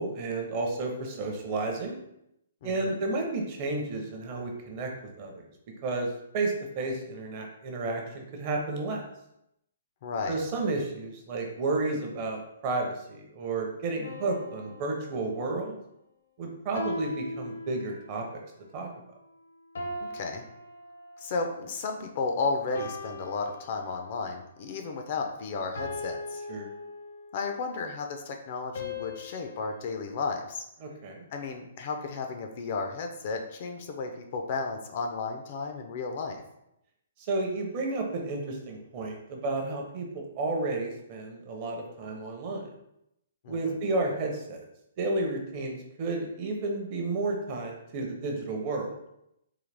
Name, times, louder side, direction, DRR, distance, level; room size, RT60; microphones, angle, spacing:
voice 1, 0.0-2.0 2.6-4.9 5.2-5.5 5.8-9.0 10.3-15.8 16.4-18.2 18.7-18.9 26.5-26.7 30.8-31.3 37.3-42.7 43.5-44.6 45.0-48.9, right 2 dB, 30° right, 1 dB, 0.6 m, -32 dB
voice 2, 2.6-3.0 10.0-10.4 20.0-20.4 21.2-26.4 27.3-30.6 31.3-36.4 43.4-43.8, left 4 dB, 35° left, 4 dB, 0.4 m, -33 dB
sound 1, 14.0-15.7 16.7-18.3 19.7-21.4 22.7-24.3 25.7-27.5 28.7-29.8, left 2 dB, 75° left, 0.8 m, -39 dB
3.8 x 2.8 x 3.3 m, 0.80 s
hypercardioid pair, 170°, 0 cm